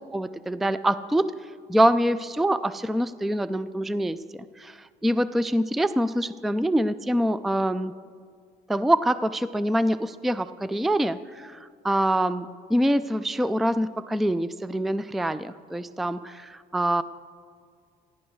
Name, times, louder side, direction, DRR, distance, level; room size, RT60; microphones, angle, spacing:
voice 1, 0.1-1.3 1.7-4.2 4.6-7.9 8.7-11.6 11.8-17.0, right 1 dB, ahead, 14 dB, 0.3 m, -25 dB
27.0 x 11.5 x 3.2 m, 2.1 s
cardioid pair, 110°, 17 cm